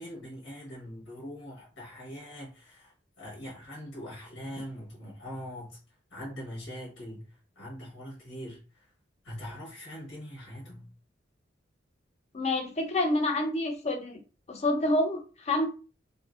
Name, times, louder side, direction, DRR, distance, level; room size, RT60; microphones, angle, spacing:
voice 1, 0.0-5.8 6.1-8.9 9.2-10.9, equal, 85° left, -4 dB, 1.1 m, -42 dB
voice 2, 12.3-14.2 14.5-15.7, left 1 dB, 35° left, 4 dB, 0.5 m, -28 dB
2.8 x 2.5 x 2.4 m, 0.35 s
head